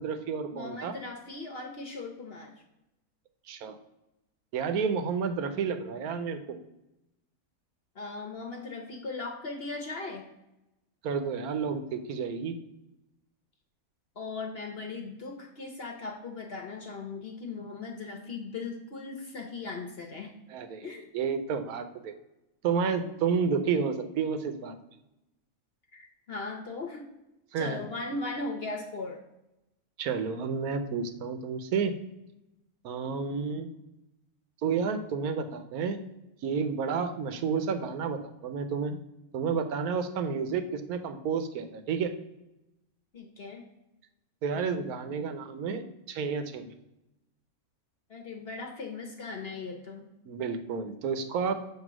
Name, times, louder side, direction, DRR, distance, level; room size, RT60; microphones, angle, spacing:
voice 1, 0.0-0.9 3.5-3.8 4.5-6.6 11.0-12.6 20.5-20.9 21.1-22.1 22.6-24.7 27.5-27.8 30.0-32.0 32.8-33.7 34.6-36.0 36.4-39.0 39.3-42.1 44.4-46.7 50.3-51.5, right 5 dB, 80° right, 9 dB, 1.2 m, -30 dB
voice 2, 0.5-2.5 7.9-10.2 14.2-20.3 20.8-21.1 25.9-27.0 27.6-29.2 43.1-43.6 48.1-50.1, left 3 dB, 50° left, 2 dB, 0.9 m, -38 dB
7.4 x 2.9 x 6.0 m, 0.92 s
omnidirectional pair, 1.6 m